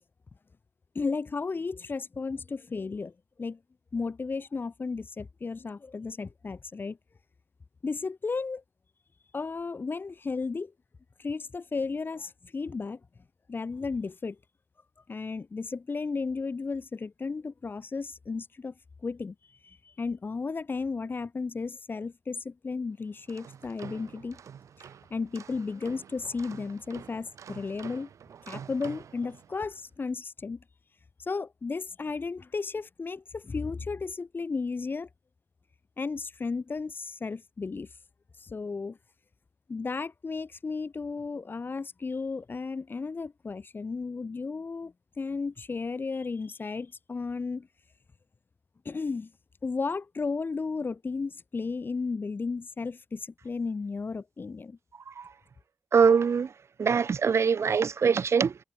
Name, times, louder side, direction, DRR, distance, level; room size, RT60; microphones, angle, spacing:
voice 1, 0.9-3.1 3.4-3.6 3.9-7.0 7.8-8.6 9.3-10.7 11.2-13.0 13.5-14.4 15.1-18.7 19.0-19.3 19.6-24.4 25.1-28.1 28.5-30.6 31.2-35.1 36.0-37.9 38.4-39.0 39.7-47.7 48.8-49.3 49.6-54.8, left 4 dB, 40° left, 0.6 m, -34 dB
sound 1, 23.1-29.8, right 8 dB, 80° right, 1.0 m, -47 dB
voice 2, 55.9-56.5 56.8-58.6, right 6 dB, 60° right, 0.6 m, -23 dB
cardioid pair, 60°, 5 cm